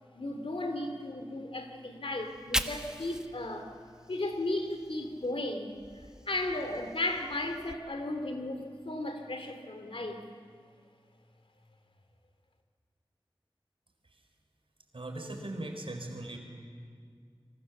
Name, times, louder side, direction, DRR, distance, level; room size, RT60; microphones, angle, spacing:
voice 1, 0.1-3.7 4.1-5.7 6.3-10.2, left 2 dB, 80° left, 6 dB, 2.6 m, -35 dB
Fire, 2.2-5.3 5.7-7.7, equal, 5° right, 1.4 m, -40 dB
voice 2, 14.9-16.4, right 1 dB, 80° right, 4 dB, 4.2 m, -39 dB
27.5 x 24.0 x 7.2 m, 2.1 s
wide cardioid pair, 40°, 9 cm